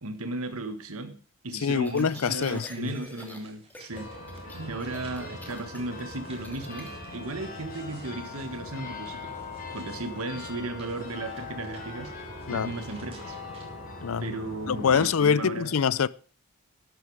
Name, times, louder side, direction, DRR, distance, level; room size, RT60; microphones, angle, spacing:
voice 1, 0.0-1.1 1.4-4.1 4.6-9.4 9.7-12.1 12.5-13.4 14.2-15.8, right 2 dB, 85° right, 1.6 m, -35 dB
voice 2, 1.6-2.9 12.5-12.7 14.0-14.3 14.7-16.1, left 6 dB, 75° left, 0.5 m, -25 dB
sound 1, 1.8-3.4 3.7-4.0 4.3-6.9, left 1 dB, 10° left, 2.6 m, -45 dB
sound 2, 1.9-13.6, right 3 dB, 30° right, 4.4 m, -57 dB
sound 3, 3.9-15.1, left 3 dB, 40° left, 4.7 m, -41 dB
13.0 x 11.5 x 4.8 m
head